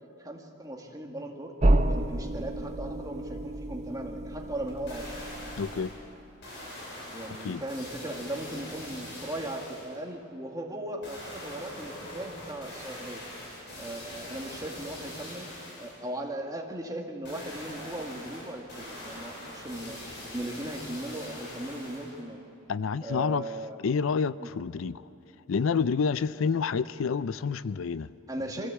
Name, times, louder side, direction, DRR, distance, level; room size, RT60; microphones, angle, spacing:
voice 1, 0.2-1.5 1.9-5.2 7.1-13.3 13.8-15.5 15.8-20.0 20.3-22.4 23.0-23.8 24.4-24.5 28.3-28.7, right 1 dB, 20° right, 2 dB, 1.9 m, -38 dB
sound 1, 1.6-6.3, right 1 dB, 35° right, 0.8 m, -29 dB
sound 2, 4.7-6.0 6.4-10.0 11.0-16.0 17.2-22.2 22.7-22.8, left 1 dB, 55° left, 6.5 m, -43 dB
voice 2, 5.6-5.9 7.4-7.6 22.7-23.5 23.8-25.0 25.5-28.1, left 5 dB, 75° left, 17 dB, 0.4 m, -28 dB
24.5 x 15.0 x 8.3 m, 2.9 s
head